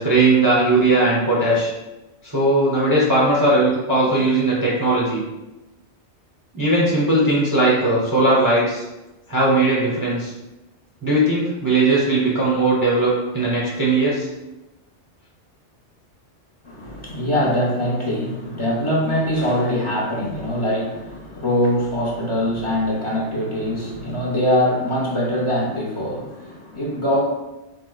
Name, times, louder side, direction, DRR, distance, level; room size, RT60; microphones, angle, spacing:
voice 1, 0.0-1.7 2.2-5.2 6.5-8.8 9.3-10.3 11.0-14.3, right 2 dB, 25° right, -6 dB, 0.5 m, -18 dB
voice 2, 16.6-27.2, equal, 35° left, -5 dB, 0.5 m, -23 dB
4.7 x 2.0 x 2.3 m, 1.0 s
omnidirectional pair, 1.2 m